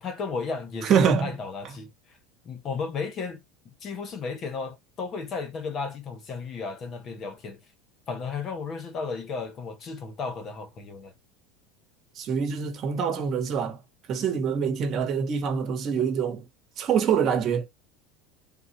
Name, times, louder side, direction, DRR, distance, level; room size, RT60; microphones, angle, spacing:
voice 1, 0.0-2.2 2.4-7.6 8.1-11.1, left 4 dB, 30° left, 0.8 m, -34 dB
voice 2, 0.8-1.3 12.2-13.8 14.1-16.4 16.8-17.7, right 7 dB, 35° right, 1.2 m, -25 dB
3.7 x 2.4 x 4.3 m
supercardioid pair, 155°, 0 cm